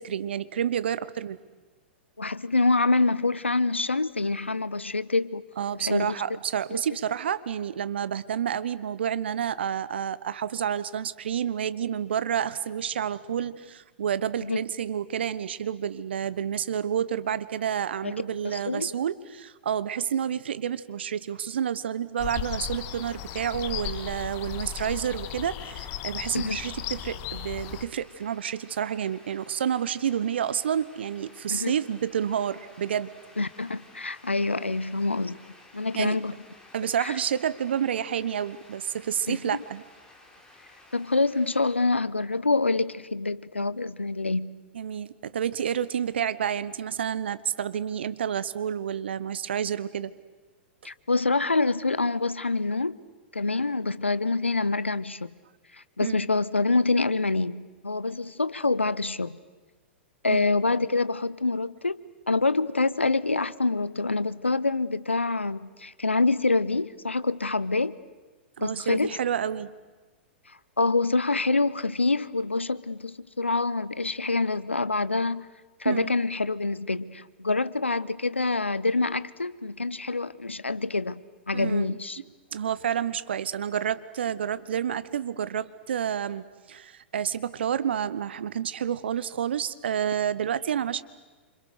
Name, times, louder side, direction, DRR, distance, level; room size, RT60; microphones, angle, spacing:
voice 1, 0.0-1.4 5.6-33.1 35.9-36.2 36.7-39.8 44.7-50.1 56.0-56.2 60.3-60.4 68.6-69.7 75.8-76.1 81.5-82.0 82.5-91.0, right 9 dB, 65° right, 16 dB, 1.1 m, -29 dB
voice 2, 2.2-5.4 5.8-6.1 6.7-6.8 14.4-14.6 18.0-18.1 18.4-18.9 26.3-26.6 31.5-31.7 33.4-35.4 35.7-36.4 37.0-37.1 39.3-39.4 40.9-44.6 50.8-53.0 53.3-55.3 56.0-59.4 60.2-62.0 62.3-68.0 68.6-69.2 70.8-75.5 75.8-81.2 81.5-82.2, left 3 dB, 90° left, 17 dB, 0.8 m, -26 dB
sound 1, 22.2-27.9, left 11 dB, 40° left, 1.6 m, -36 dB
sound 2, 27.6-41.7, left 2 dB, 10° left, 4.8 m, -54 dB
28.0 x 26.0 x 6.7 m, 1.3 s
figure-of-eight pair, 105°, 6 cm